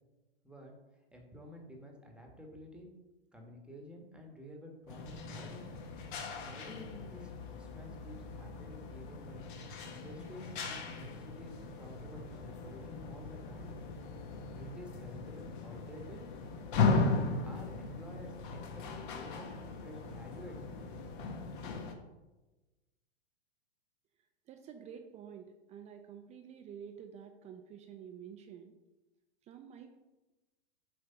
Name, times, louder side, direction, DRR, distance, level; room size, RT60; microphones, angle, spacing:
voice 1, 1.1-2.9 3.3-5.7 6.4-9.5 9.8-13.8 14.5-16.2 16.8-17.1 17.4-20.6, left 1 dB, 5° right, 0 dB, 1.2 m, -51 dB
sound 1, 4.9-21.9, left 4 dB, 50° left, 1.2 m, -38 dB
voice 2, 24.5-28.7 29.5-30.0, right 8 dB, 20° right, 5 dB, 0.5 m, -49 dB
7.7 x 3.4 x 5.5 m, 1.1 s
hypercardioid pair, 120°, 33 cm